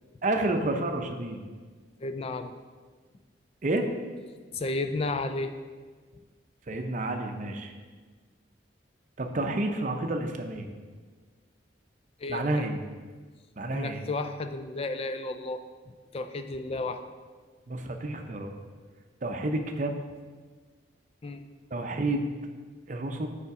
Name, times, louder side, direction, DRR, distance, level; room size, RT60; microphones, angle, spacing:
voice 1, 0.2-1.5 3.6-3.9 6.7-7.7 9.2-10.7 12.3-12.8 13.6-14.0 17.7-18.5 19.2-20.0 21.7-22.3 22.9-23.3, right 2 dB, 40° right, 5 dB, 0.6 m, -30 dB
voice 2, 2.0-2.5 4.5-5.5 12.2-12.7 13.7-15.6 16.1-17.0 21.2-21.4, left 2 dB, 30° left, 8 dB, 0.4 m, -32 dB
6.9 x 5.0 x 4.8 m, 1.5 s
head